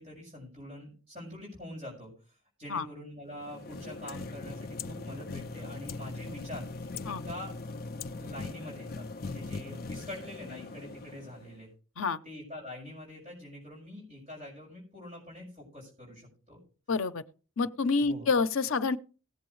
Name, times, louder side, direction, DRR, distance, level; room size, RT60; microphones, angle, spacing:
voice 1, 0.0-7.5 8.1-11.7 12.2-16.6 18.0-18.3, left 1 dB, 30° right, 5.7 m, -45 dB
sound 1, 3.3-11.6, left 3 dB, 45° left, 0.4 m, -40 dB
voice 2, 16.9-17.2 17.6-19.0, left 4 dB, 75° left, 0.7 m, -28 dB
18.5 x 7.8 x 3.2 m
head